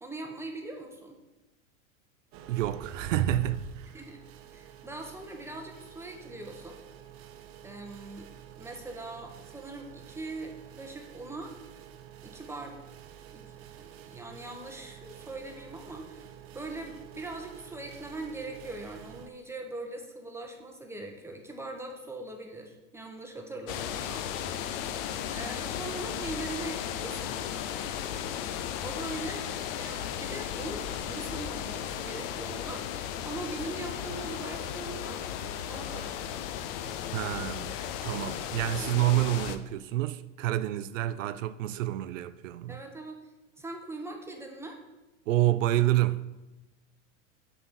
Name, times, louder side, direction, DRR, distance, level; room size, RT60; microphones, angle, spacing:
voice 1, 0.0-1.2 3.9-4.2 4.5-6.8 7.6-8.3 8.6-11.5 12.2-12.8 13.3-16.3 16.5-24.3 25.3-27.3 28.8-29.5 29.8-32.8 33.2-35.2 35.6-36.2 38.8-38.9 42.7-43.2 43.6-44.8, right 2 dB, 5° right, 1.0 m, -41 dB
sound 1, 2.3-19.3, right 8 dB, 35° right, 0.7 m, -44 dB
voice 2, 2.5-4.0 37.1-42.8 45.3-46.2, right 15 dB, 75° right, 0.5 m, -28 dB
sound 2, 23.7-39.6, left 9 dB, 50° left, 0.6 m, -35 dB
7.2 x 4.2 x 6.2 m
hypercardioid pair, 120°, 38 cm